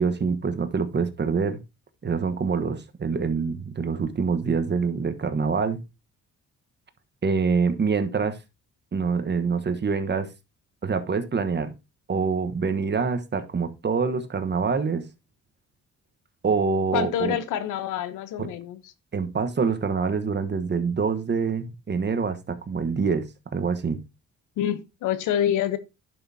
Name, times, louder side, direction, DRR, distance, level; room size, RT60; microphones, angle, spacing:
voice 1, 0.0-1.6 2.0-5.8 7.2-8.4 8.9-10.3 10.8-11.7 12.1-15.0 16.4-17.4 18.4-18.5 19.1-23.3 23.5-24.0, right 5 dB, 35° right, 1.3 m, -25 dB
voice 2, 16.9-18.8 24.6-25.8, left 10 dB, 90° left, 1.0 m, -26 dB
10.5 x 6.3 x 2.8 m
cardioid pair, 90°, 30 cm